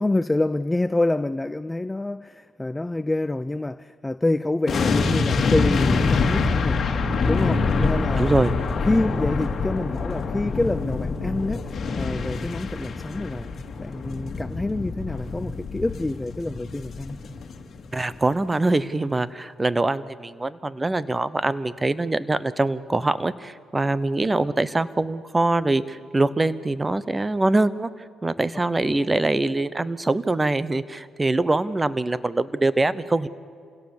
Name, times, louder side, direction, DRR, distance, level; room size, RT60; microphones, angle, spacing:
voice 1, 0.0-6.8 7.2-8.4 8.9-13.5 13.8-17.2, left 2 dB, 15° left, 0.5 m, -27 dB
sound 1, 4.7-17.8 18.1-18.3, left 4 dB, 50° left, 2.2 m, -25 dB
voice 2, 8.2-8.5 17.9-27.9 28.2-33.3, right 2 dB, 20° right, 0.9 m, -23 dB
27.5 x 17.0 x 7.2 m
cardioid pair, 90°, 0 cm